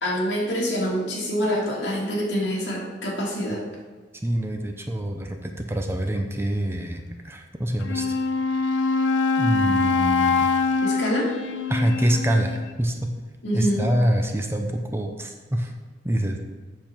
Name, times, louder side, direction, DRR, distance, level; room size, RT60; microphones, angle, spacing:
voice 1, 0.0-3.6 10.8-11.3 13.4-13.9, equal, 70° left, -4 dB, 2.4 m, -26 dB
voice 2, 4.1-8.2 9.4-10.5 11.7-13.1 13.5-15.7 16.0-16.4, right 1 dB, 15° right, 4 dB, 0.6 m, -25 dB
Wind instrument woodwind instrument, 7.8-12.7, left 4 dB, 90° left, 0.6 m, -23 dB
7.7 x 6.9 x 4.5 m, 1.4 s
head